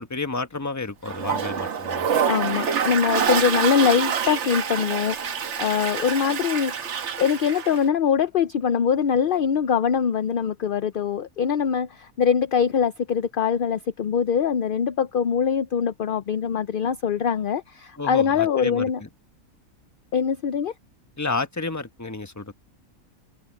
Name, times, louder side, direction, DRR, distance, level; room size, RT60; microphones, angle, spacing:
voice 1, 0.0-2.1 18.0-19.1 21.2-22.5, left 3 dB, 15° left, 1.1 m, -31 dB
Toilet flush, 1.1-7.8, right 7 dB, 55° right, 1.3 m, -26 dB
voice 2, 2.3-5.2 5.4-19.0 20.1-20.7, left 7 dB, 55° left, 0.6 m, -23 dB
omnidirectional pair, 1.5 m